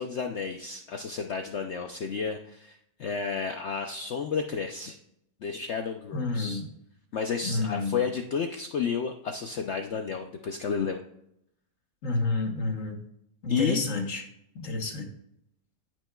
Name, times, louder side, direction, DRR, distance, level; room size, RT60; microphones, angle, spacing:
voice 1, 0.0-5.0 5.4-6.6 7.1-11.0 13.5-13.8, left 6 dB, 70° left, 4 dB, 0.6 m, -31 dB
voice 2, 6.1-6.7 7.4-8.0 12.0-13.0 13.4-14.2 14.5-15.1, left 3 dB, 55° left, 4 dB, 1.4 m, -29 dB
15.0 x 6.1 x 2.3 m, 0.77 s
omnidirectional pair, 1.8 m